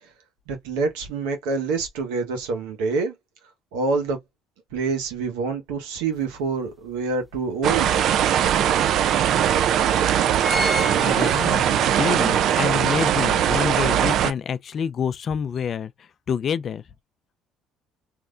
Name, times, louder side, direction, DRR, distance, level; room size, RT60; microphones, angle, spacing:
voice 1, 0.5-3.1 3.7-4.2 4.7-8.0, right 4 dB, 90° right, 1.1 m, -26 dB
sound 1, 6.2-6.3 6.7-7.9 8.5-8.6 8.9-9.0 9.7-9.9 10.1-12.0 12.4-12.5, left 2 dB, 10° left, 0.9 m, -31 dB
sound 2, 7.6-14.3, right 10 dB, 65° right, 0.4 m, -20 dB
voice 2, 11.0-16.8, left 7 dB, 50° left, 0.4 m, -27 dB
3.2 x 2.7 x 2.4 m
supercardioid pair, 85°, 0 cm